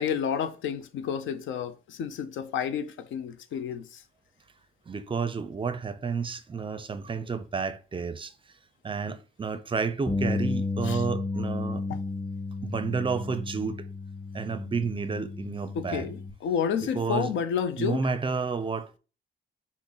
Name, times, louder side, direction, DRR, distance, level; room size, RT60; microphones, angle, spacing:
voice 1, 0.0-4.0 10.8-11.0 11.9-12.0 15.7-18.1, left 7 dB, 75° left, 0.5 m, -30 dB
voice 2, 4.9-8.3 8.8-11.8 12.6-13.8 14.3-16.1 16.8-17.3 17.8-19.0, right 5 dB, 25° right, 0.5 m, -31 dB
Bass guitar, 10.1-16.3, left 3 dB, 25° left, 2.1 m, -33 dB
5.9 x 2.0 x 3.9 m
cardioid pair, 90°, 20 cm